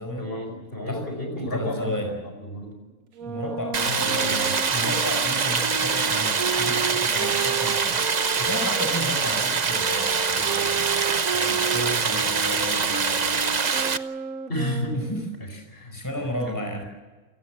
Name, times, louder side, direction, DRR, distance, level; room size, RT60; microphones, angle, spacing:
voice 1, 0.2-2.7 3.8-4.5 14.5-15.0 15.7-16.0 16.5-16.8, left 1 dB, 40° left, 4 dB, 5.5 m, -31 dB
voice 2, 1.5-2.1 3.2-13.4 14.9-15.7 15.9-16.8, left 1 dB, 10° left, 3 dB, 4.9 m, -33 dB
sound 1, 3.1-8.9 9.7-15.3, right 7 dB, 75° right, 1.6 m, -33 dB
Stream, 3.7-14.0, right 5 dB, 35° right, 0.8 m, -24 dB
28.5 x 19.0 x 7.4 m, 1.3 s
omnidirectional pair, 1.5 m